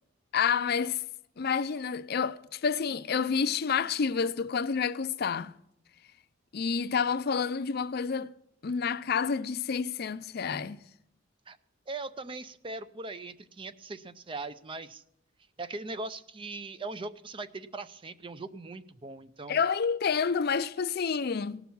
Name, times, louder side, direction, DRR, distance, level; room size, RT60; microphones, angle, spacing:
voice 1, 0.3-1.0 1.4-5.5 6.5-8.3 8.6-10.8 19.5-21.6, left 6 dB, 50° left, 0.5 m, -29 dB
voice 2, 11.9-15.0 15.6-19.6, right 3 dB, 25° right, 0.5 m, -40 dB
18.0 x 6.0 x 7.0 m
head